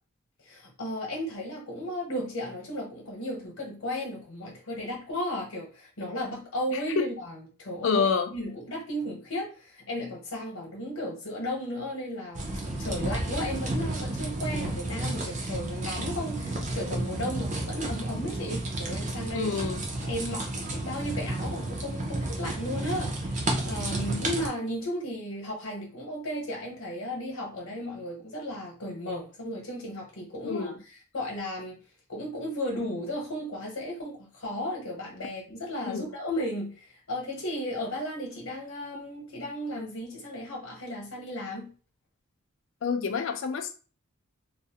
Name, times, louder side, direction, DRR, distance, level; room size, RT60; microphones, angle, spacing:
voice 1, 0.5-19.6 20.1-23.1 23.6-31.8 32.1-41.7, equal, 80° left, -2 dB, 0.8 m, -35 dB
voice 2, 6.7-7.1 7.8-8.3 19.3-19.8 30.4-30.8 35.9-36.1 42.8-43.8, left 5 dB, 65° left, 7 dB, 0.4 m, -28 dB
sound 1, 12.3-24.5, right 1 dB, 35° right, 0.5 m, -32 dB
2.4 x 2.0 x 2.7 m, 0.37 s
head